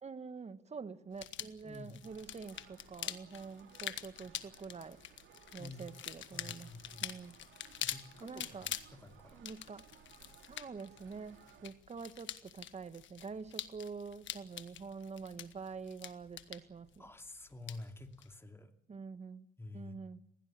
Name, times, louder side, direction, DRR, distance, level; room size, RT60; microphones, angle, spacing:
voice 1, 0.0-5.0 5.5-6.7 7.0-7.4 8.2-8.7 9.3-9.8 10.5-17.1 18.9-19.5 19.7-20.2, right 5 dB, 35° right, 1.4 m, -46 dB
sound 1, 1.1-18.3, left 11 dB, 70° left, 1.4 m, -46 dB
voice 2, 1.6-2.0 5.6-5.8 6.3-7.1 7.8-9.4 17.0-18.7 19.6-20.0, left 2 dB, 10° left, 2.5 m, -50 dB
sound 2, 2.0-11.7, right 9 dB, 85° right, 2.3 m, -61 dB
21.0 x 17.0 x 8.9 m
cardioid pair, 90°, 20 cm